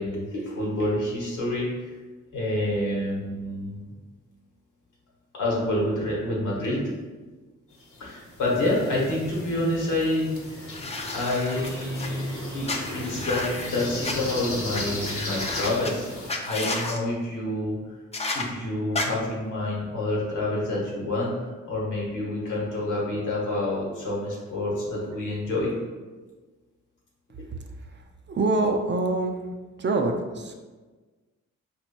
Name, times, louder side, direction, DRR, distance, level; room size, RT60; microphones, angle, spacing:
voice 1, 0.0-1.9 2.3-3.9 5.3-7.0 8.0-10.8 11.1-18.0 18.3-25.7, left 1 dB, 80° left, -4 dB, 1.1 m, -28 dB
sound 1, 7.8-16.3, left 1 dB, 45° left, 0.9 m, -36 dB
sound 2, 10.7-12.1 12.7-14.1 14.7-14.8 15.1-15.9 16.3-17.0 18.1-18.4 18.9-19.1, left 2 dB, 20° left, 0.5 m, -32 dB
voice 2, 27.9-29.4 29.8-30.6, right 2 dB, 40° right, 4 dB, 0.4 m, -25 dB
4.0 x 3.0 x 2.2 m, 1.3 s
cardioid pair, 60°, 30 cm